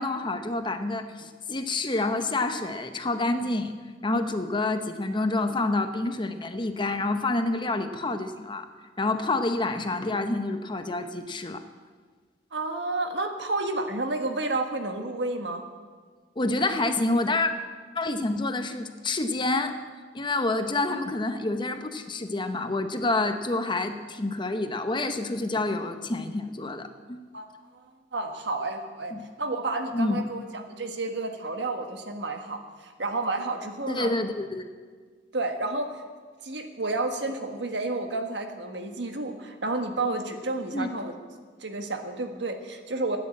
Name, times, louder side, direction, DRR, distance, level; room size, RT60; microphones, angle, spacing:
voice 1, 0.0-3.7 4.0-8.7 9.0-11.6 16.4-17.5 17.9-19.8 20.1-27.2 29.1-29.2 29.9-30.2 33.9-34.6 40.7-40.9, left 2 dB, 25° left, 8 dB, 0.9 m, -28 dB
voice 2, 12.5-15.6 20.9-21.0 27.3-27.5 27.7-27.8 28.1-34.1 35.3-36.0 36.4-41.1 41.6-43.2, right 2 dB, 70° right, 6 dB, 1.5 m, -31 dB
14.0 x 9.8 x 8.6 m, 1.5 s
head